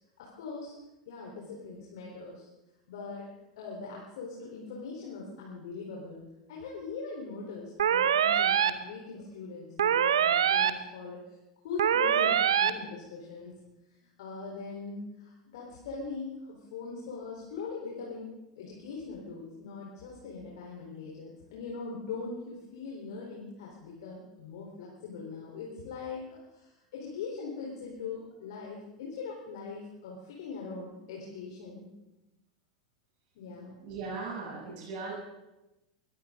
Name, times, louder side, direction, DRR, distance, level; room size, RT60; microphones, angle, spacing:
voice 1, 0.2-0.7 1.1-2.5 2.9-3.2 3.6-6.2 6.5-11.4 11.6-13.6 14.0-18.3 18.6-31.9 33.3-33.7, left 4 dB, 60° left, -3 dB, 4.1 m, -41 dB
sound 1, 7.8-8.7 9.8-10.7 11.8-12.7, right 9 dB, 70° right, 0.9 m, -24 dB
voice 2, 33.8-35.1, right 4 dB, 45° right, -4 dB, 7.5 m, -38 dB
22.5 x 16.5 x 3.9 m, 1.0 s
figure-of-eight pair, 85°, 3 cm